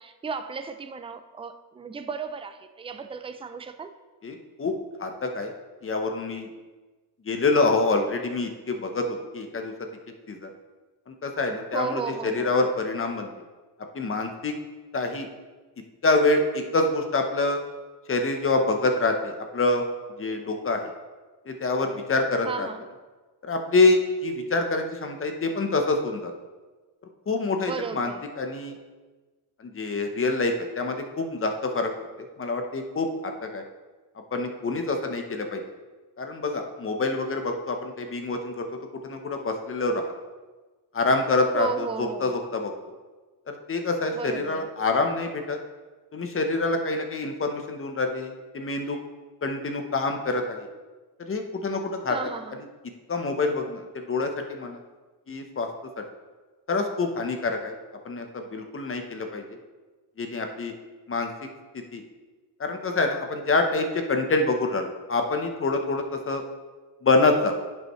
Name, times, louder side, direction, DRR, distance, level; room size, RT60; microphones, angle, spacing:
voice 1, 0.0-3.9 11.7-12.5 22.4-22.8 27.6-28.2 41.5-42.4 44.1-44.7 52.1-52.6, right 5 dB, 15° right, 9 dB, 0.3 m, -34 dB
voice 2, 4.2-4.7 5.0-5.5 5.8-6.5 7.2-9.9 10.3-10.5 11.1-13.3 13.9-14.5 14.9-15.3 16.0-17.6 18.1-19.9 20.2-20.9 21.5-22.7 23.4-26.3 27.3-28.7 29.6-31.9 32.4-33.6 34.3-35.6 36.2-38.7 39.0-40.0 40.9-42.7 43.5-45.6 46.1-49.0 49.4-50.7 51.2-52.2 53.1-54.8 55.3-55.7 56.0-56.1 56.7-57.7 58.0-59.4 60.2-60.7 61.1-61.3 61.7-62.0 62.6-66.4 67.0-67.5, left 3 dB, 30° left, 4 dB, 0.9 m, -26 dB
10.5 x 5.5 x 3.1 m, 1.3 s
cardioid pair, 110°, 46 cm